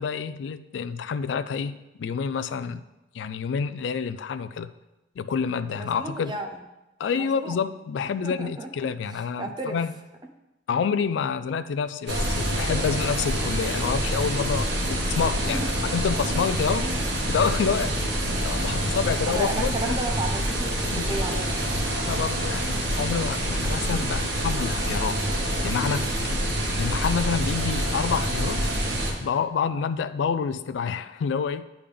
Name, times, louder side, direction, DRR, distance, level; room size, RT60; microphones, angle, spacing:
voice 1, 0.0-2.8 3.1-4.7 5.2-6.4 7.0-9.9 10.7-15.6 15.9-16.9 17.3-18.0 18.4-20.0 20.9-21.2 22.1-25.2 25.6-26.4 26.8-28.7 29.2-31.6, left 6 dB, 85° left, 13 dB, 0.3 m, -28 dB
voice 2, 5.7-6.6 7.1-7.6 8.2-8.7 9.1-9.8 15.4-15.7 19.3-21.8, right 2 dB, 25° right, 3 dB, 0.6 m, -33 dB
sound 1, 12.1-29.1, right 1 dB, 85° right, 1.2 m, -26 dB
10.0 x 3.5 x 3.4 m, 0.99 s
head